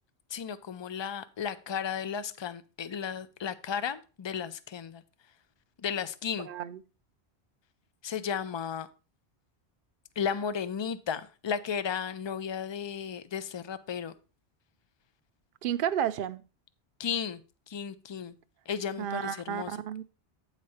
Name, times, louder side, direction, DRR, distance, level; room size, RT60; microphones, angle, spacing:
voice 1, 0.3-5.0 5.8-6.5 8.0-8.9 10.2-14.1 17.0-17.4 17.7-18.3 18.7-19.8, left 7 dB, 50° left, 0.3 m, -34 dB
voice 2, 6.5-6.8 15.6-16.4 19.0-20.0, right 10 dB, 60° right, 0.7 m, -32 dB
8.8 x 4.1 x 4.7 m
omnidirectional pair, 1.1 m